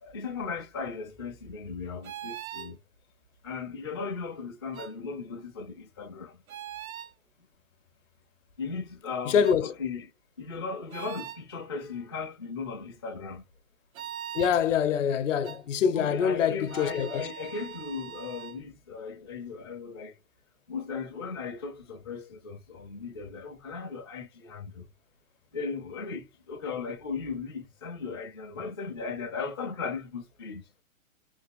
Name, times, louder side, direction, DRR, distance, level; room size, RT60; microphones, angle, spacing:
voice 1, 0.0-2.8 3.4-6.3 8.6-10.1 10.4-13.4 15.9-20.1 20.7-24.8 25.5-30.6, left 5 dB, 20° left, 0.4 m, -37 dB
sound 1, 2.0-2.7 4.7-4.9 6.5-7.1 9.4-9.6 10.9-11.4 13.9-14.6 15.4-15.6 16.7-18.6, right 10 dB, 90° right, 0.6 m, -41 dB
voice 2, 9.3-9.7 14.3-17.3, left 7 dB, 65° left, 0.7 m, -25 dB
3.4 x 2.0 x 3.4 m
hypercardioid pair, 155°, 41 cm